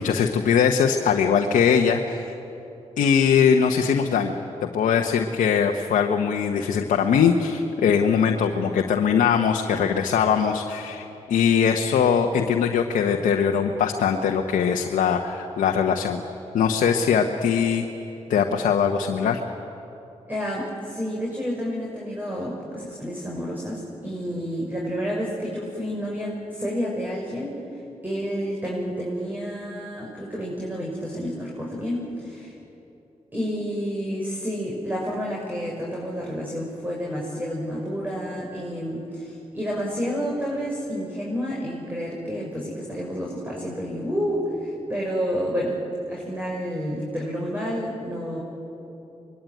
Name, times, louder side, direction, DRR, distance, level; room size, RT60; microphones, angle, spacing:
voice 1, 0.0-2.3 3.0-4.3 4.6-16.2 16.5-17.8 18.3-19.4, left 7 dB, 85° left, 3 dB, 1.2 m, -21 dB
voice 2, 20.3-27.6 28.0-32.5 33.3-45.8 46.1-48.4, equal, 15° right, -3 dB, 6.6 m, -30 dB
24.5 x 22.0 x 9.4 m, 3.0 s
supercardioid pair, 45°, 13 cm